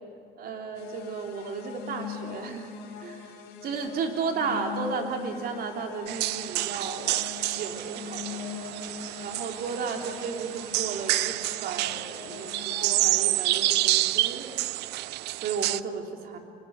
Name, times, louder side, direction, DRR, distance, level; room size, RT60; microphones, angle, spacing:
voice 1, 0.4-2.7 3.0-3.3 3.6-7.2 7.5-8.5 9.2-14.5 15.4-16.4, right 5 dB, 65° right, 3 dB, 3.5 m, -34 dB
sound 1, 0.8-13.1, left 8 dB, 85° left, 3.8 m, -42 dB
sound 2, 6.1-15.8, right 17 dB, 85° right, 0.6 m, -28 dB
26.0 x 25.0 x 8.2 m, 2.5 s
cardioid pair, 110°, 17 cm